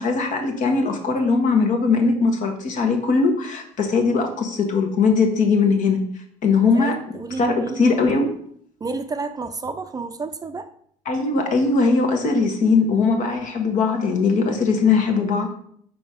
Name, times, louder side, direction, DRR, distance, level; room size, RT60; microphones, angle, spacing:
voice 1, 0.0-6.0 6.4-6.9 7.4-8.3 11.1-15.5, left 4 dB, 60° left, 4 dB, 1.3 m, -20 dB
voice 2, 6.6-7.9 8.8-10.7, right 4 dB, 25° right, 9 dB, 0.5 m, -31 dB
4.8 x 4.0 x 5.0 m, 0.63 s
supercardioid pair, 85°, 15 cm